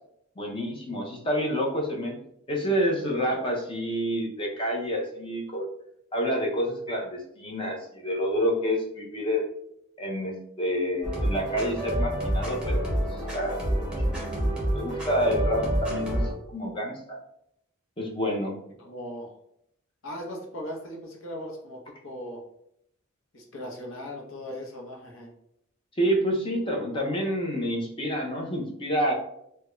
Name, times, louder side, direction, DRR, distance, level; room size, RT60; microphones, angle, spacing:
voice 1, 0.4-2.2 2.5-5.7 6.1-9.5 10.0-12.8 13.3-13.7 14.1-17.2 18.0-18.5 26.0-29.1, equal, 25° left, 0 dB, 0.6 m, -28 dB
sound 1, 11.0-16.3, right 1 dB, 5° right, 0.9 m, -28 dB
voice 2, 18.8-19.3 20.0-22.4 23.3-25.3, equal, 70° left, 0 dB, 0.8 m, -38 dB
3.5 x 2.2 x 3.0 m, 0.74 s
head